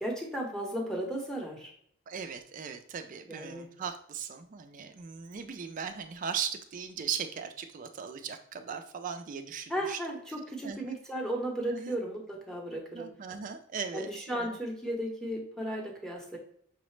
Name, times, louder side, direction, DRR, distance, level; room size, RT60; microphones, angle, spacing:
voice 1, 0.0-1.7 3.3-3.7 9.7-13.1 13.9-16.4, right 1 dB, ahead, -1 dB, 0.7 m, -35 dB
voice 2, 2.1-10.0 10.6-11.0 11.7-12.0 12.9-14.6, right 7 dB, 40° right, 7 dB, 0.3 m, -38 dB
5.6 x 2.0 x 3.1 m, 0.64 s
head